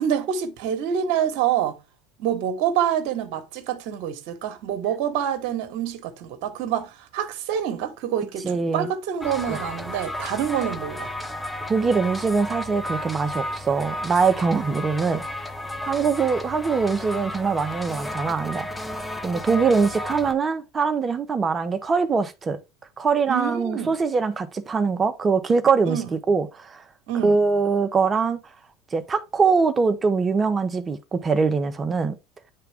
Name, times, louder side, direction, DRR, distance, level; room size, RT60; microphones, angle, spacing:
voice 1, 0.0-1.8 2.2-11.1 23.3-23.9 25.8-26.1 27.1-27.4, right 9 dB, 70° right, 1.2 m, -26 dB
voice 2, 8.4-8.9 9.5-9.6 11.7-15.2 15.9-18.7 19.2-22.6 23.0-26.8 27.2-28.4 28.9-32.2, right 5 dB, 25° right, 0.8 m, -23 dB
sound 1, 9.2-20.3, left 1 dB, 5° left, 0.8 m, -33 dB
8.8 x 3.5 x 3.5 m
supercardioid pair, 100°, 0 cm